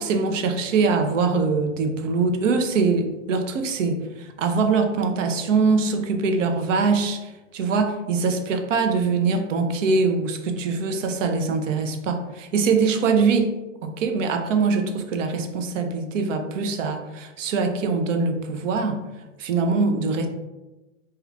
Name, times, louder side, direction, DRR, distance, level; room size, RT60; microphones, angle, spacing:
voice 1, 0.0-13.5 13.8-19.0 19.4-20.3, right 4 dB, 70° right, 6 dB, 0.6 m, -23 dB
3.0 x 2.3 x 3.2 m, 1.1 s
hypercardioid pair, 135°, 39 cm